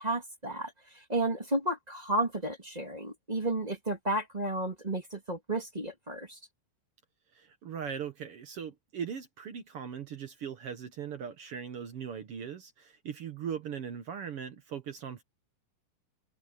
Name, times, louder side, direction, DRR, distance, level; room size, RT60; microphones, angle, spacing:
voice 1, 0.0-6.4, right 1 dB, 15° right, 1.9 m, -32 dB
voice 2, 7.3-15.2, right 7 dB, 60° right, 1.5 m, -39 dB
open air
omnidirectional pair, 4.1 m